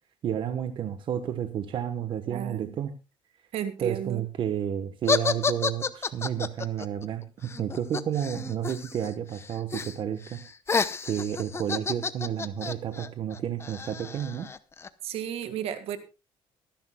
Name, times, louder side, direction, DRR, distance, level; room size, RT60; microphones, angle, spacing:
voice 1, 0.2-2.9 3.8-7.2 7.6-10.4 11.0-14.5, right 9 dB, 55° right, 8 dB, 1.2 m, -31 dB
voice 2, 2.3-2.7 3.5-4.2 15.0-16.0, right 9 dB, 75° right, 10 dB, 1.8 m, -33 dB
sound 1, 5.1-9.1 9.3-10.0 10.3-14.9, left 5 dB, 25° left, 0.8 m, -30 dB
23.5 x 10.5 x 2.3 m, 0.29 s
cardioid pair, 125°, 10 cm